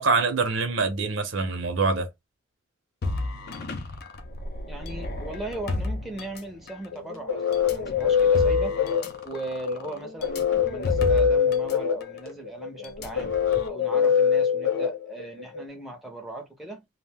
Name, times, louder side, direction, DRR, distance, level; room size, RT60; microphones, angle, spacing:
voice 1, 0.0-2.1, right 4 dB, 75° right, 0.7 m, -24 dB
sound 1, 3.0-6.9 7.5-11.8 12.0-12.2 12.8-13.7, left 2 dB, 50° left, 0.5 m, -33 dB
voice 2, 4.7-8.8 9.2-13.3 13.7-16.8, right 2 dB, ahead, 0.6 m, -38 dB
sound 2, 6.9-15.6, left 7 dB, 85° left, 0.9 m, -24 dB
2.5 x 2.1 x 3.4 m
head